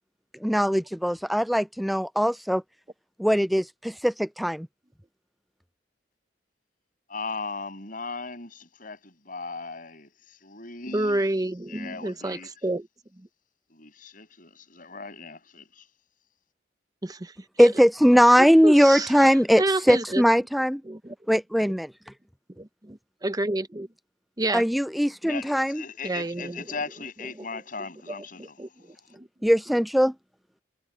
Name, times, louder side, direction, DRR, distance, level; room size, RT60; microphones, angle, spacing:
voice 1, 0.4-2.6 3.2-4.7 17.6-20.8 21.3-21.9 24.5-25.8 29.4-30.1, equal, ahead, 0.3 m, -20 dB
voice 2, 7.1-11.2 11.7-12.5 13.7-15.9 25.2-28.6, left 4 dB, 50° left, 7.8 m, -38 dB
voice 3, 10.9-12.9 13.2-13.3 17.0-17.7 18.4-19.3 19.6-20.2 20.8-21.1 21.6-21.7 22.6-23.9 24.4-24.6 26.0-26.6 28.4-29.3, right 2 dB, 20° right, 0.8 m, -29 dB
head